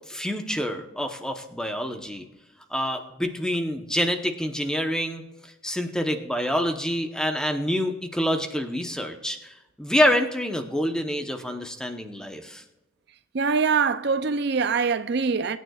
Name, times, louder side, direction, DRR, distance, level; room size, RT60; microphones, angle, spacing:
voice 1, 0.1-2.2 2.7-12.6, equal, 5° left, 0.9 m, -27 dB
voice 2, 13.3-15.6, right 5 dB, 55° right, 0.5 m, -23 dB
24.0 x 9.3 x 2.4 m
head